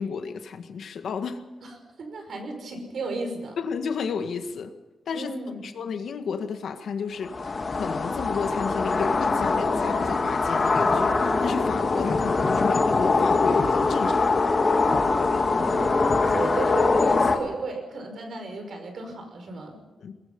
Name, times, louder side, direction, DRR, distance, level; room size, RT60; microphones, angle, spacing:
voice 1, 0.0-1.4 3.6-4.7 5.1-5.3 5.6-14.4 20.0-20.1, left 6 dB, 75° left, 7 dB, 1.8 m, -32 dB
voice 2, 1.6-3.6 5.1-5.6 15.5-19.8, right 3 dB, 55° right, 5 dB, 5.3 m, -34 dB
sound 1, 7.2-17.4, left 3 dB, 35° left, 2.0 m, -23 dB
22.0 x 22.0 x 5.5 m, 1.1 s
wide cardioid pair, 165°, 0 cm